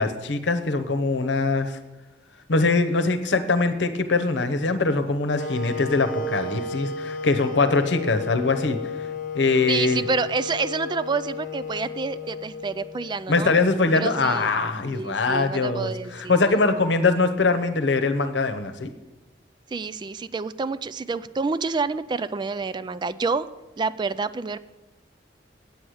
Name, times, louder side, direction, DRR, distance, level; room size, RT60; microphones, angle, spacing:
voice 1, 0.0-1.8 2.5-8.8 9.3-10.1 13.3-18.9, left 3 dB, 85° left, 8 dB, 0.9 m, -22 dB
Wind instrument woodwind instrument, 5.3-13.3, left 3 dB, 50° left, 1.1 m, -33 dB
voice 2, 9.7-13.5 13.9-14.5 14.9-16.6 19.7-23.5 23.8-24.6, right 4 dB, 25° right, 14 dB, 0.3 m, -28 dB
8.5 x 8.4 x 6.3 m, 1.1 s
head